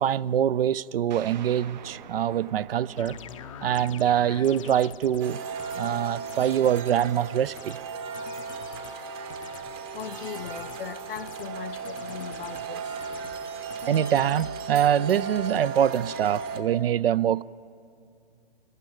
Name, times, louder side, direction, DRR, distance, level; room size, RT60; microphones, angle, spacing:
voice 1, 0.0-3.2 3.6-5.4 5.7-7.8 13.9-17.4, right 10 dB, 65° right, 0.5 m, -24 dB
sound 1, 1.1-10.3, right 8 dB, 45° right, 0.8 m, -50 dB
sound 2, 3.0-5.3 5.6-5.9 6.3-7.1 7.4-7.8 8.1-9.0 9.3-9.7 10.0-10.8 11.2-11.5 11.8-12.7 13.0-13.4 13.7-14.5, left 10 dB, 35° left, 0.5 m, -45 dB
sound 3, 5.2-16.6, right 5 dB, 25° right, 1.0 m, -36 dB
voice 2, 9.6-12.9, left 8 dB, 60° left, 0.9 m, -39 dB
21.5 x 15.0 x 10.0 m
hypercardioid pair, 150°, 31 cm